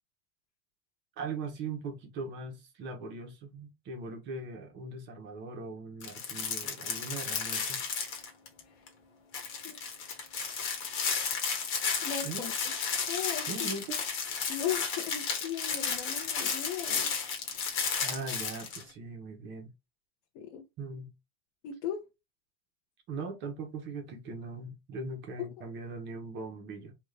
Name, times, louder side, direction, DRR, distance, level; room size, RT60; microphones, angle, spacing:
voice 1, 1.2-7.8 12.2-12.5 13.5-14.0 18.0-19.7 20.8-21.1 23.1-26.9, right 3 dB, 35° right, 1.0 m, -40 dB
sound 1, 6.0-8.6 8.9-9.0 9.3-18.8, left 6 dB, 40° left, 1.3 m, -33 dB
voice 2, 12.0-12.5 13.1-13.7 14.5-17.1 20.3-20.6 21.6-22.0, left 9 dB, 60° left, 0.9 m, -37 dB
3.5 x 2.4 x 3.3 m
supercardioid pair, 160°, 31 cm